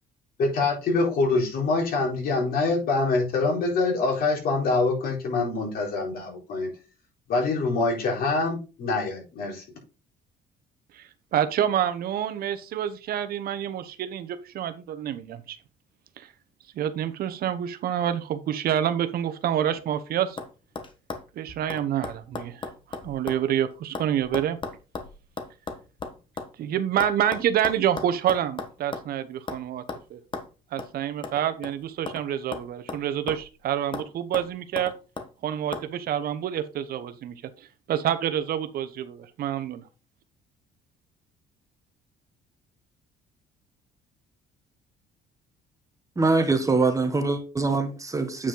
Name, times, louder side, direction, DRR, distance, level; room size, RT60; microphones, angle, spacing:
voice 1, 0.4-6.7 7.3-9.6, left 3 dB, 60° left, 4.0 m, -25 dB
voice 2, 10.9-15.6 16.2-16.3 16.7-20.4 21.3-22.7 23.0-24.6 26.6-29.8 30.1-30.2 30.7-34.9 35.4-37.3 37.9-39.8, right 10 dB, 65° right, 0.9 m, -27 dB
sound 1, 19.6-20.0 20.4-20.5 20.7-23.5 23.7-26.5 27.0-29.1 29.5-29.6 29.9-30.0 30.3-30.5 30.8-30.9 31.2-32.2 32.5-33.6 33.9-34.1 34.3-35.3 35.7-35.9, left 4 dB, 30° left, 1.4 m, -36 dB
voice 3, 46.2-48.5, right 3 dB, 20° right, 1.5 m, -23 dB
8.6 x 5.0 x 3.8 m
cardioid pair, 110°, 17 cm